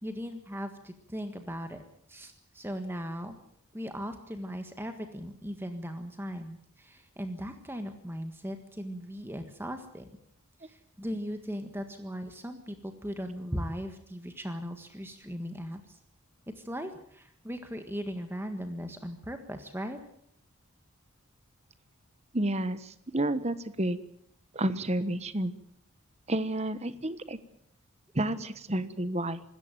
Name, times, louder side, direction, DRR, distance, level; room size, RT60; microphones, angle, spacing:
voice 1, 0.0-1.8 2.1-3.4 3.7-10.1 10.6-16.0 16.6-20.0, equal, 10° right, 7 dB, 1.6 m, -38 dB
voice 2, 22.3-24.0 24.5-25.5 26.3-27.4 28.1-29.4, right 1 dB, 30° right, 13 dB, 1.2 m, -30 dB
26.0 x 13.5 x 9.1 m, 0.69 s
head